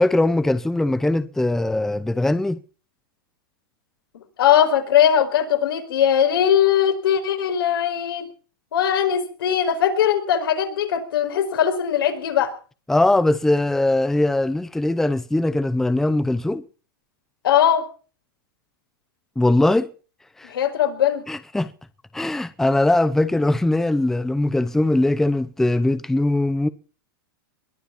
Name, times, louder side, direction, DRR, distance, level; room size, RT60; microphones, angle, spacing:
voice 1, 0.0-2.6 12.9-16.6 19.4-19.9 20.4-20.5 21.3-21.7 22.1-26.7, left 2 dB, 5° left, 0.7 m, -20 dB
voice 2, 4.4-8.3 8.7-12.5 17.4-17.8 20.4-21.2, left 9 dB, 80° left, 4.9 m, -20 dB
21.5 x 9.1 x 7.2 m
hypercardioid pair, 140°, 12 cm